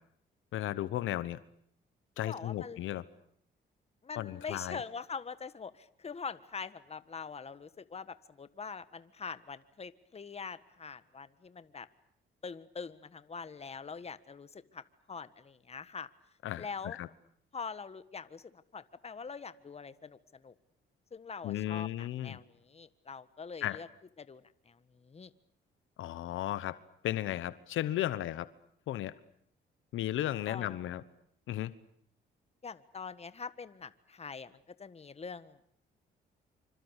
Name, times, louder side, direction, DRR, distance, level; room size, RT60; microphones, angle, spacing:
voice 1, 0.5-1.4 2.2-3.0 4.2-4.8 16.4-17.1 21.4-22.4 23.6-23.8 26.0-26.8 27.0-28.5 28.9-29.1 29.9-31.0 31.5-31.7, left 13 dB, 80° left, 15 dB, 1.2 m, -35 dB
voice 2, 2.2-2.8 4.0-11.9 12.4-14.8 15.1-16.1 16.6-17.0 17.5-20.5 21.1-23.9 24.2-25.3 30.5-30.9 32.6-35.7, left 5 dB, 30° left, 13 dB, 1.5 m, -44 dB
26.5 x 25.5 x 8.2 m, 0.67 s
cardioid pair, 90°, 20 cm